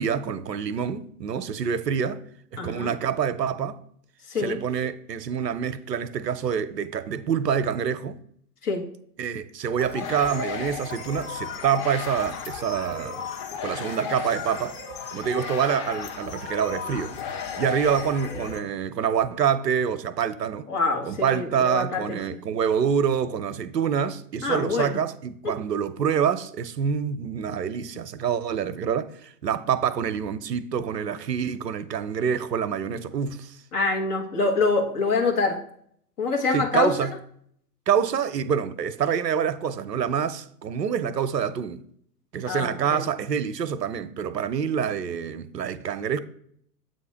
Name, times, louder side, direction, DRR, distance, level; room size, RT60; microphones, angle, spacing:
voice 1, 0.0-2.2 2.5-3.8 4.4-8.2 9.2-13.3 13.6-14.8 15.1-17.1 17.6-20.7 21.1-33.6 36.5-37.1 37.9-41.8 42.3-46.2, right 7 dB, 85° right, 0.6 m, -26 dB
voice 2, 2.6-2.9 4.3-4.6 8.6-8.9 20.7-22.2 24.4-25.0 25.4-25.6 33.7-35.6 36.2-36.9 42.5-43.1, left 3 dB, 65° left, 1.4 m, -25 dB
sound 1, 9.8-18.6, left 7 dB, 35° left, 1.2 m, -34 dB
7.7 x 2.9 x 5.6 m
figure-of-eight pair, 105°, 48 cm